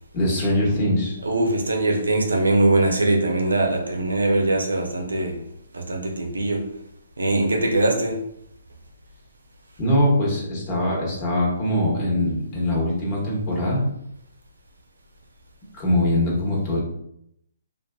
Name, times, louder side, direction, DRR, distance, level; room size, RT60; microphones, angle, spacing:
voice 1, 0.1-1.2 9.8-13.8 15.7-16.8, left 1 dB, 30° left, -4 dB, 1.1 m, -22 dB
voice 2, 1.2-5.4 5.7-6.7 7.2-8.2, right 2 dB, 85° right, 2 dB, 0.6 m, -21 dB
2.7 x 2.5 x 2.3 m, 0.75 s
hypercardioid pair, 140°, 0 cm